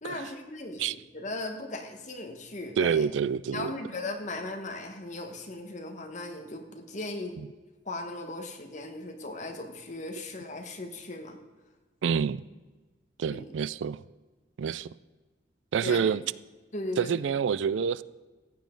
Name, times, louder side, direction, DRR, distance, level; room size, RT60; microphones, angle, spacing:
voice 1, 0.0-3.0 3.5-7.3 7.8-11.4 13.3-13.4 15.8-16.0 16.7-17.2, left 2 dB, 40° left, 4 dB, 1.5 m, -37 dB
voice 2, 2.8-3.7 12.0-12.4 13.2-14.0 14.6-14.9 15.7-16.2 17.0-18.0, right 6 dB, 85° right, 19 dB, 0.4 m, -27 dB
15.0 x 9.4 x 3.9 m, 1.3 s
head